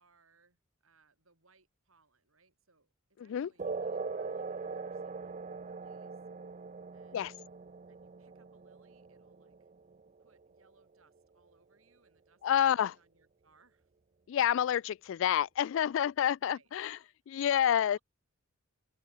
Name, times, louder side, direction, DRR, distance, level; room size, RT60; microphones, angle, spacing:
voice 1, 0.0-2.9 3.2-6.2 6.9-7.4 7.9-9.7 10.2-13.9 16.4-17.1 17.7-18.0, right 4 dB, 80° right, 6.9 m, -68 dB
voice 2, 3.2-3.5 7.1-7.3 12.4-12.9 14.3-17.0 17.3-18.0, left 9 dB, 65° left, 0.3 m, -28 dB
sound 1, 3.6-10.6, right 4 dB, 35° right, 0.5 m, -41 dB
open air
head